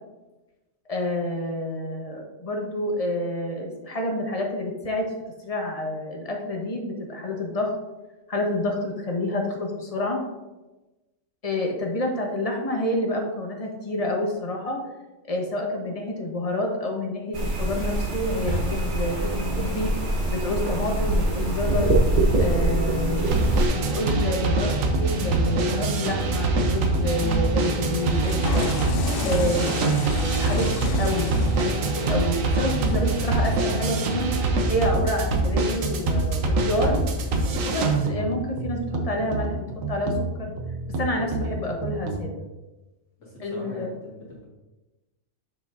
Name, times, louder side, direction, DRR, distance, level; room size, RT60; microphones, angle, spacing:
voice 1, 0.9-5.1 5.4-7.7 8.3-10.2 11.4-14.8 15.2-19.9 20.3-21.9 22.4-23.2 23.7-24.7 25.0-28.7 29.2-29.7 30.4-34.3 34.7-37.0 37.6-40.5 41.0-42.4 43.4-44.0, left 1 dB, 30° left, 1 dB, 0.9 m, -28 dB
sound 1, 17.3-23.7, right 1 dB, 40° right, 1.1 m, -24 dB
sound 2, 23.2-42.2, right 2 dB, 80° right, 1.2 m, -24 dB
Water / Toilet flush, 28.0-34.3, left 5 dB, 60° left, 0.6 m, -37 dB
voice 2, 29.0-29.9 43.2-44.4, left 2 dB, 75° left, -7 dB, 2.2 m, -39 dB
7.2 x 6.0 x 2.5 m, 1.1 s
omnidirectional pair, 1.3 m